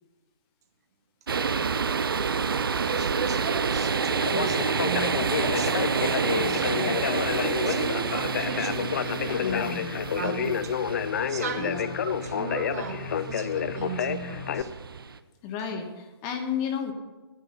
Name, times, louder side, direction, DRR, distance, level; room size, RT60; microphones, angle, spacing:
sound 1, 1.3-15.2, right 5 dB, 55° right, 0.7 m, -29 dB
voice 1, 2.8-9.7 10.2-10.8 11.3-14.7, right 6 dB, 35° right, 1.2 m, -36 dB
Conversation, 4.1-14.6, left 8 dB, 40° left, 0.6 m, -29 dB
voice 2, 9.4-10.0 11.6-11.9 15.4-16.9, left 7 dB, 20° left, 1.2 m, -32 dB
12.0 x 9.7 x 6.5 m
figure-of-eight pair, 135°, 14 cm